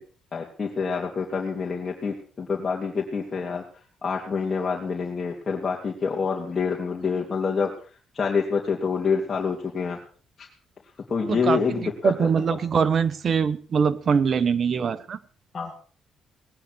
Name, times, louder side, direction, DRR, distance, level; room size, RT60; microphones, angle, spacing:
voice 1, 0.3-3.6 4.0-7.7 8.1-10.0 10.4-10.5 11.1-12.6 15.5-15.7, left 5 dB, 35° left, -2 dB, 3.1 m, -27 dB
voice 2, 11.3-15.2, right 6 dB, 50° right, 14 dB, 1.2 m, -23 dB
19.0 x 9.8 x 6.5 m, 0.42 s
cardioid pair, 90°, 0 cm